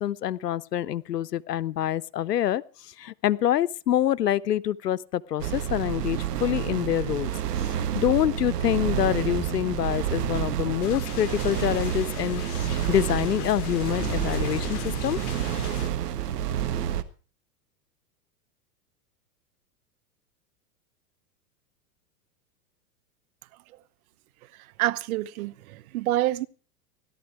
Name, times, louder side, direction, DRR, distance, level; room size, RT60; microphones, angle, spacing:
voice 1, 0.0-2.6 3.0-7.3 7.8-15.2, left 11 dB, 90° left, 0.8 m, -26 dB
sound 1, 5.4-17.0, right 10 dB, 80° right, 1.5 m, -29 dB
sound 2, 8.0-16.7, left 7 dB, 25° left, 3.5 m, -42 dB
sound 3, 10.8-15.9, left 13 dB, 65° left, 1.2 m, -41 dB
voice 2, 24.8-26.5, right 15 dB, 65° right, 1.0 m, -27 dB
17.0 x 12.5 x 4.7 m
hypercardioid pair, 105°, 47 cm